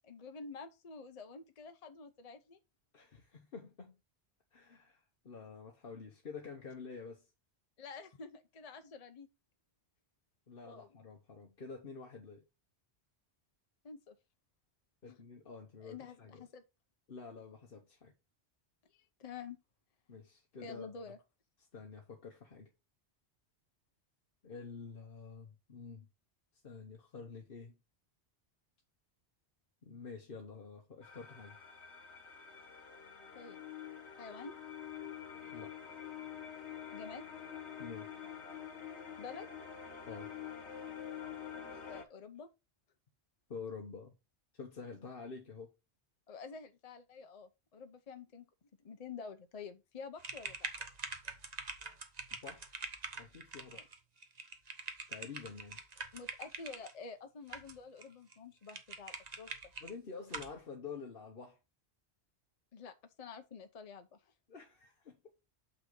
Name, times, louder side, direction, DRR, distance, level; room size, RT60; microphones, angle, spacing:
voice 1, 0.0-2.6 7.8-9.3 10.7-10.9 13.8-14.2 15.1-15.2 15.8-16.6 18.9-19.6 20.6-21.2 33.3-33.6 34.2-34.5 36.9-37.3 39.2-39.5 41.9-42.5 46.3-48.4 48.8-50.7 53.7-53.9 56.1-59.5 62.7-64.3, left 5 dB, 40° left, 0.7 m, -49 dB
voice 2, 2.9-4.0 4.5-7.2 10.5-12.4 15.0-16.4 17.1-18.1 20.1-20.9 21.7-22.7 24.4-26.1 26.6-27.8 29.8-31.6 35.3-35.8 37.8-38.1 40.0-40.3 41.8-42.0 43.5-44.1 44.5-45.7 52.3-52.7 53.2-53.9 55.1-55.8 59.8-61.6 64.5-65.2, left 5 dB, 55° left, 1.3 m, -48 dB
sound 1, 31.0-42.0, left 8 dB, 85° left, 1.5 m, -47 dB
sound 2, 50.2-56.9 57.5-58.0 58.3-58.4 58.7-59.9 60.3-60.6, right 4 dB, 40° right, 1.1 m, -45 dB
6.8 x 5.8 x 3.8 m
omnidirectional pair, 1.1 m